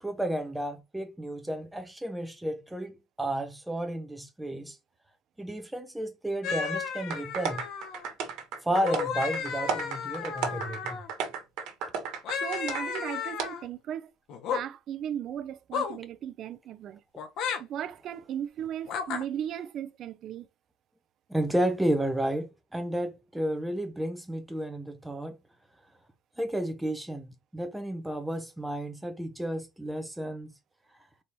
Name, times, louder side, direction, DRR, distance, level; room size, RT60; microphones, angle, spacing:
voice 1, 0.0-4.8 5.4-7.6 8.6-11.0 21.3-25.4 26.4-30.5, right 1 dB, 5° right, 0.7 m, -32 dB
sound 1, 6.4-8.1 8.7-11.1 12.2-13.6 14.3-14.6 15.7-16.0 17.2-17.6 18.9-19.2, left 6 dB, 50° left, 0.8 m, -33 dB
sound 2, 7.1-13.0 13.4-13.5, right 6 dB, 75° right, 1.2 m, -34 dB
voice 2, 12.4-14.1 14.5-17.0 17.6-20.5, right 10 dB, 45° right, 0.4 m, -36 dB
4.1 x 3.4 x 3.0 m
cardioid pair, 170°, 0 cm